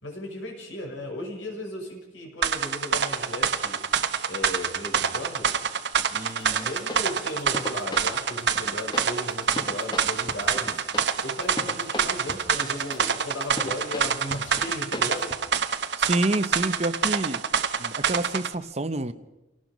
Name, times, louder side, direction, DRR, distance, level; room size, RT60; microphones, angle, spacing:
voice 1, 0.0-5.5 6.1-10.8 11.2-15.4, left 1 dB, 90° left, 1 dB, 6.5 m, -36 dB
sound 1, 2.4-18.5, right 6 dB, 65° right, 1.0 m, -26 dB
sound 2, 6.3-15.4, left 1 dB, 25° left, 1.5 m, -39 dB
voice 2, 16.0-17.4 17.8-19.1, right 2 dB, 35° right, 12 dB, 0.9 m, -27 dB
28.5 x 18.0 x 5.2 m, 1.0 s
head